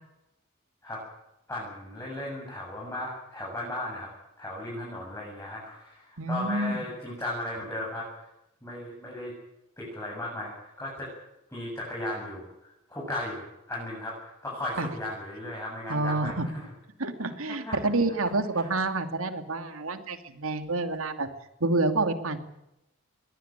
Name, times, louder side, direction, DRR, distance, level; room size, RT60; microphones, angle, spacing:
voice 1, 1.5-4.1 4.4-8.3 8.6-9.4 9.8-11.1 11.5-16.7 17.2-17.8 18.2-18.7, left 1 dB, 15° left, -4 dB, 7.9 m, -36 dB
voice 2, 6.2-6.8 14.8-14.9 15.9-16.5 17.0-21.3 21.6-22.4, right 2 dB, 80° right, 8 dB, 2.7 m, -28 dB
22.5 x 17.5 x 9.2 m, 0.88 s
head